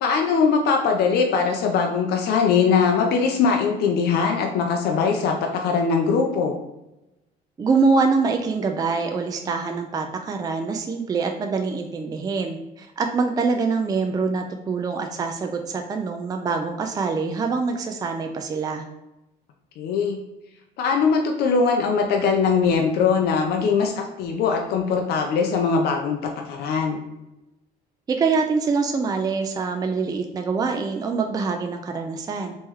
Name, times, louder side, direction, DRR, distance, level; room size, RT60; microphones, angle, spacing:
voice 1, 0.0-6.6 19.8-20.2 20.8-26.2 26.5-27.0, left 5 dB, 70° left, 2 dB, 0.5 m, -21 dB
voice 2, 7.6-18.8 28.1-32.6, right 4 dB, 20° right, 4 dB, 0.4 m, -24 dB
3.0 x 3.0 x 3.6 m, 0.96 s
cardioid pair, 110°, 17 cm